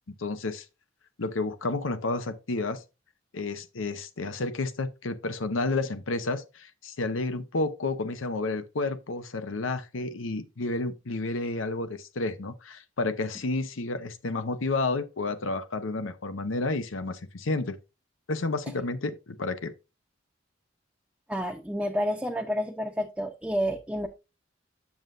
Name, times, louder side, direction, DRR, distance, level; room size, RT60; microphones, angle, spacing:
voice 1, 0.1-0.6 1.2-2.8 3.3-17.8 18.3-19.7, left 3 dB, 85° left, 0.8 m, -31 dB
voice 2, 21.3-24.1, equal, 5° right, 0.6 m, -29 dB
7.5 x 7.3 x 2.5 m
head